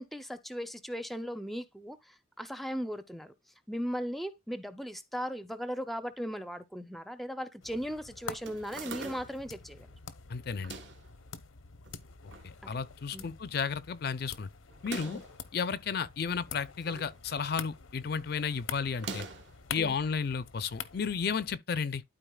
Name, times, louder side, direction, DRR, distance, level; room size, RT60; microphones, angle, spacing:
voice 1, 0.0-3.3 3.7-9.9 12.7-12.8 13.1-13.3 15.0-15.2 19.8-20.0, equal, ahead, 0.5 m, -37 dB
sound 1, 7.6-21.6, left 6 dB, 85° left, 0.8 m, -47 dB
sound 2, 8.4-9.5 10.5-11.1 11.8-12.5 12.9-13.0 13.1-13.2 14.7-15.3 16.4-17.1 17.4-17.8 18.9-19.6, right 4 dB, 65° right, 1.4 m, -43 dB
voice 2, 10.3-10.8 12.4-14.5 14.8-15.2 15.5-19.3 19.7-22.0, left 6 dB, 50° left, 0.4 m, -33 dB
12.0 x 4.2 x 2.3 m
head